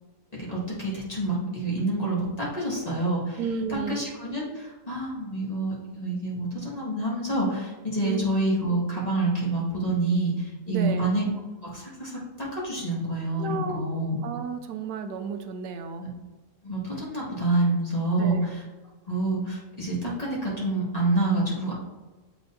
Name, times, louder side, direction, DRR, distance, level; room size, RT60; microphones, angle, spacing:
voice 1, 0.3-3.4 3.7-11.3 11.6-12.2 12.5-14.2 16.0-16.1 16.6-18.6 19.1-21.7, right 2 dB, 25° left, -6 dB, 1.8 m, -27 dB
voice 2, 3.4-4.0 8.0-8.2 10.7-11.1 13.4-16.1 18.2-18.4, right 5 dB, 90° right, 7 dB, 1.2 m, -32 dB
7.6 x 4.6 x 2.7 m, 1.2 s
omnidirectional pair, 1.8 m